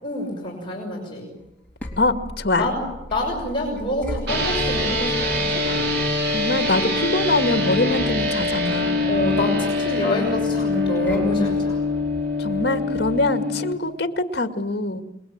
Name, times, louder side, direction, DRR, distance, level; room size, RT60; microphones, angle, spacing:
voice 1, 0.0-1.3 2.6-5.8 9.0-11.8, left 1 dB, 30° left, -2 dB, 6.4 m, -26 dB
sound 1, 1.4-13.3, left 1 dB, 10° left, 4.1 m, -38 dB
voice 2, 2.0-2.6 6.3-9.1 12.4-15.0, left 2 dB, 60° left, 7 dB, 2.2 m, -23 dB
sound 2, 4.3-13.7, left 2 dB, 60° right, 4.3 m, -24 dB
29.0 x 21.5 x 9.0 m, 0.91 s
head